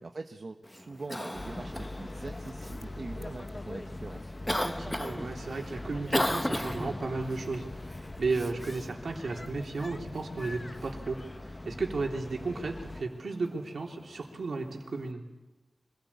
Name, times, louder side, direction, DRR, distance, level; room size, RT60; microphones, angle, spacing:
voice 1, 0.0-4.3, right 3 dB, 50° right, 5 dB, 1.1 m, -43 dB
Cough, 0.6-15.1, left 1 dB, 10° left, 0.9 m, -39 dB
sound 1, 1.3-13.0, left 2 dB, 30° left, 1.2 m, -42 dB
voice 2, 4.6-11.2 11.6-15.2, right 3 dB, 70° right, 1 dB, 3.4 m, -34 dB
25.0 x 17.5 x 8.6 m, 1.1 s
wide cardioid pair, 105°, 0 cm